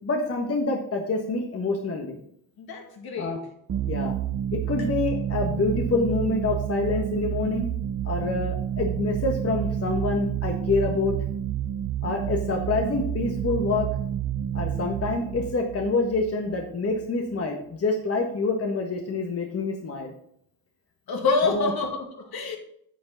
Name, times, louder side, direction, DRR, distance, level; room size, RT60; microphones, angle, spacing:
voice 1, 0.0-2.2 3.2-3.4 3.9-4.2 4.5-7.7 8.0-11.2 12.0-13.9 14.5-20.1 21.4-21.7, left 3 dB, 30° left, 2 dB, 1.5 m, -26 dB
voice 2, 2.6-3.4 21.1-22.6, left 4 dB, 50° left, 3 dB, 2.3 m, -27 dB
sound 1, 3.7-17.0, right 10 dB, 30° right, 0.7 m, -30 dB
9.7 x 6.9 x 4.0 m, 0.69 s
supercardioid pair, 75°, 46 cm